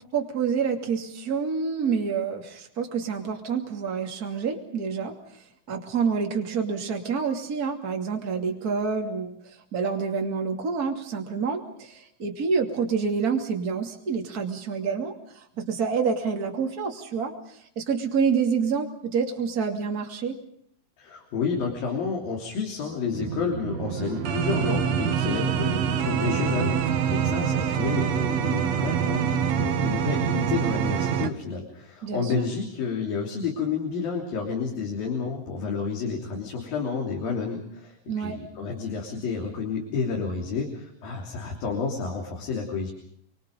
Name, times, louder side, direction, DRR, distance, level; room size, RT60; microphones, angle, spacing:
voice 1, 0.1-5.1 5.7-9.4 9.7-20.4 32.0-32.5 38.1-38.4, right 5 dB, 30° right, 2 dB, 2.8 m, -28 dB
voice 2, 21.0-42.9, left 5 dB, 85° left, 0 dB, 5.1 m, -30 dB
sound 1, 23.1-31.3, right 8 dB, 60° right, 2.1 m, -26 dB
27.5 x 24.5 x 5.3 m, 0.69 s
omnidirectional pair, 4.0 m